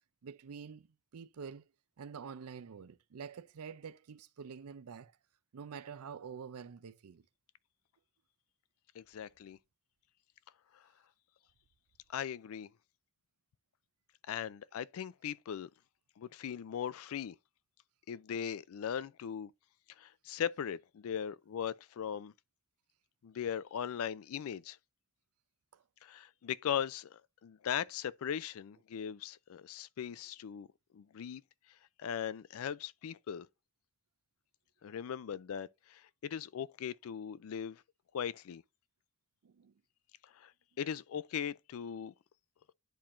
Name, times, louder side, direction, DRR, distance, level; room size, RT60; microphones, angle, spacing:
voice 1, 0.2-0.9 1.1-1.6 2.0-5.1 5.5-7.2 25.7-25.8 39.4-39.7, right 6 dB, 80° right, 0.5 m, -47 dB
voice 2, 8.9-9.6 10.7-10.9 12.1-12.7 14.3-15.7 16.2-17.4 18.1-19.5 19.9-22.3 23.2-24.8 26.0-30.7 30.9-31.4 31.7-33.5 34.8-37.8 38.1-38.6 40.2-40.5 40.8-42.1, left 8 dB, 65° left, 0.3 m, -39 dB
10.5 x 4.3 x 2.5 m
head